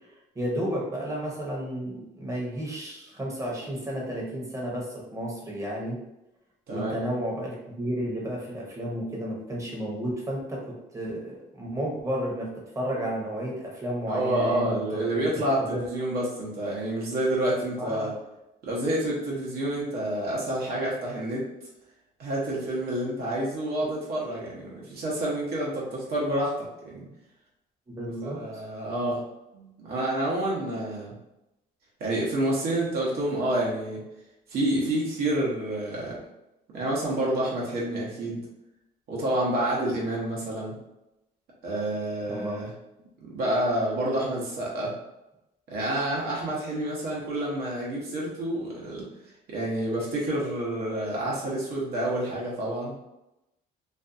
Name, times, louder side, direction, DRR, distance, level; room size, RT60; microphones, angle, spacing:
voice 1, 0.3-6.0 6.7-10.6 10.9-12.5 12.7-15.2 15.7-15.8 17.8-18.1 27.9-28.4 42.3-42.6, equal, 20° right, -3 dB, 0.8 m, -32 dB
voice 2, 6.7-7.2 14.1-18.1 18.6-21.5 22.2-27.1 28.2-29.2 29.5-31.1 32.0-34.0 34.5-36.2 36.7-38.4 39.1-40.7 41.6-42.7 43.2-44.9 45.7-49.1 49.5-52.9, right 1 dB, 65° right, -5 dB, 0.8 m, -28 dB
2.5 x 2.3 x 2.5 m, 0.92 s
cardioid pair, 110°, 17 cm